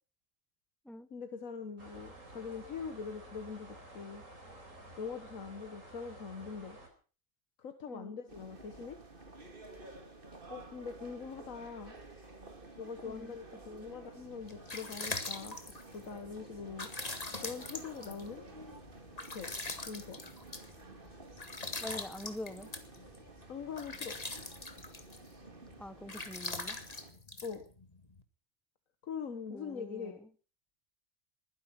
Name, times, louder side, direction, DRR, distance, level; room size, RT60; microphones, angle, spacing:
voice 1, 1.1-4.2 5.0-6.8 7.6-9.0 10.5-11.9 12.8-15.6 15.9-16.9 17.4-18.4 19.3-19.5 19.8-20.2 23.5-24.2 27.4-27.6 29.0-30.3, left 5 dB, 85° left, 8 dB, 1.7 m, -43 dB
sound 1, 1.8-6.9, right 1 dB, 75° right, 4.9 m, -52 dB
voice 2, 7.9-8.2 13.0-13.3 21.8-22.7 25.8-26.8 29.5-30.3, left 1 dB, ahead, 13 dB, 0.9 m, -45 dB
sound 2, 8.3-27.1, right 2 dB, 40° right, 2.6 m, -52 dB
sound 3, 14.3-28.2, left 2 dB, 30° left, 1.9 m, -43 dB
21.0 x 10.5 x 5.9 m, 0.38 s
omnidirectional pair, 1.4 m